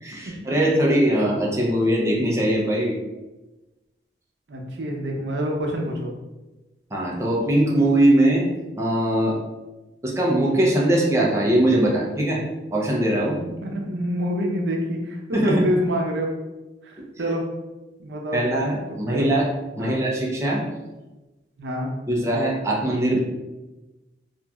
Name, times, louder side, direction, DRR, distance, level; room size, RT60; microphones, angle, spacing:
voice 1, 0.0-3.0 6.9-8.4 8.8-9.4 10.0-12.4 12.7-13.4 15.3-15.6 17.0-17.1 18.3-19.5 19.8-20.6 22.1-23.2, right 1 dB, 15° right, -3 dB, 0.5 m, -21 dB
voice 2, 4.5-6.1 13.5-16.3 16.8-17.4 18.0-18.4 19.1-19.5 19.8-20.0 21.6-21.9, equal, 80° right, 0 dB, 0.6 m, -27 dB
2.9 x 2.5 x 2.3 m, 1.1 s
head